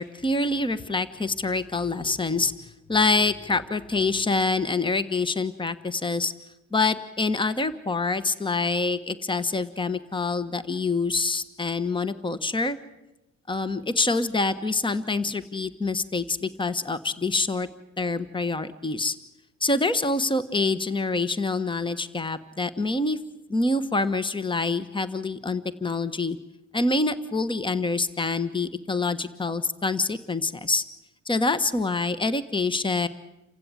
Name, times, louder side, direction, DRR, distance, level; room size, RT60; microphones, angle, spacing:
voice 1, 0.0-2.5 2.9-6.3 6.7-12.8 13.5-17.7 18.0-19.2 19.6-23.2 23.5-26.4 26.7-30.8 31.2-33.1, left 3 dB, 15° left, 14 dB, 1.3 m, -26 dB
28.5 x 16.0 x 9.6 m, 0.96 s
cardioid pair, 90°, 30 cm